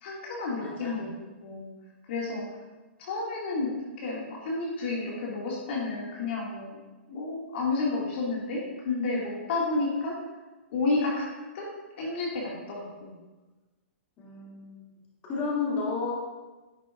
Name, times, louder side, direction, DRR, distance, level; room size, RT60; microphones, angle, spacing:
voice 1, 0.0-1.1 1.4-1.7 2.1-2.5 3.0-6.8 7.1-10.2 10.7-11.3 11.5-11.7 12.0-13.1, left 3 dB, 60° left, -4 dB, 1.9 m, -31 dB
voice 2, 0.6-1.0 14.2-14.9 15.3-16.1, left 4 dB, 30° left, -5 dB, 2.2 m, -32 dB
10.5 x 6.0 x 2.4 m, 1.2 s
hypercardioid pair, 130°, 7 cm